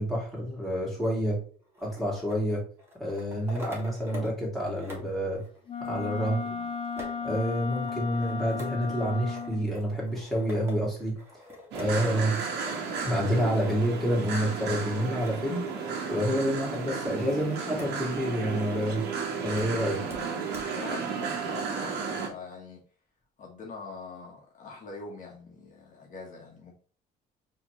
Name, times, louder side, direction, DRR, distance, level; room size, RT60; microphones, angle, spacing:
voice 1, 0.0-1.4 1.8-2.6 3.0-5.4 5.8-6.4 7.2-11.2 11.7-12.4 13.0-15.6 16.1-19.0 19.4-20.0, equal, ahead, -4 dB, 2.3 m, -28 dB
sound 1, 1.0-4.4 4.7-18.0 18.3-18.4 19.6-19.7 20.1-20.2 20.5-20.6, left 2 dB, 15° right, 1.8 m, -46 dB
Wind instrument woodwind instrument, 5.7-9.7, left 6 dB, 35° left, 1.2 m, -34 dB
voice 2, 6.2-6.6 20.7-22.8 23.4-26.7, left 4 dB, 50° left, -1 dB, 1.3 m, -44 dB
sound 2, 11.7-22.3, right 5 dB, 80° right, 1.2 m, -33 dB
4.8 x 3.1 x 3.0 m, 0.41 s
cardioid pair, 110°, 17 cm